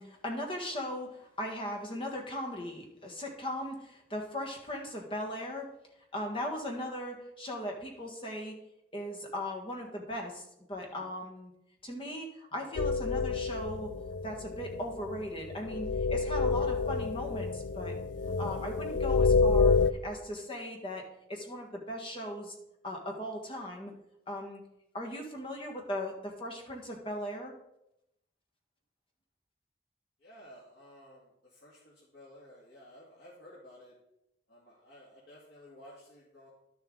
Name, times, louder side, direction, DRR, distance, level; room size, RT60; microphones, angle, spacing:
voice 1, 0.0-5.7 6.1-8.5 8.9-11.5 11.8-13.9 14.2-17.9 18.4-19.7 20.0-22.5 22.8-23.9 24.3-24.6 24.9-27.5, left 1 dB, 30° left, 0 dB, 1.6 m, -38 dB
sound 1, 12.8-19.9, left 4 dB, 85° left, 0.4 m, -28 dB
voice 2, 30.2-33.9 34.5-36.5, left 1 dB, 70° left, -7 dB, 2.2 m, -54 dB
11.5 x 7.1 x 3.9 m, 0.84 s
head